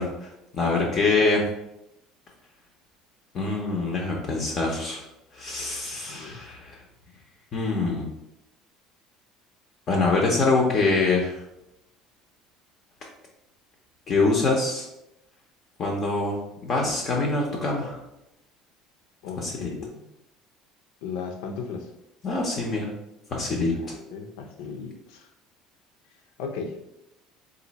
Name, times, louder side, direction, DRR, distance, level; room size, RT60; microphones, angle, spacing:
voice 1, 0.0-1.4 3.3-5.0 5.3-6.8 7.5-8.1 9.9-11.4 14.1-14.8 15.8-18.0 19.4-19.7 22.2-22.9 23.3-23.7, left 3 dB, 30° left, -1 dB, 0.6 m, -24 dB
voice 2, 6.1-6.4 19.2-20.0 21.0-21.9 23.7-25.3 26.4-26.8, left 5 dB, 85° left, 4 dB, 0.6 m, -36 dB
4.0 x 2.7 x 4.0 m, 0.85 s
cardioid pair, 175°, 0 cm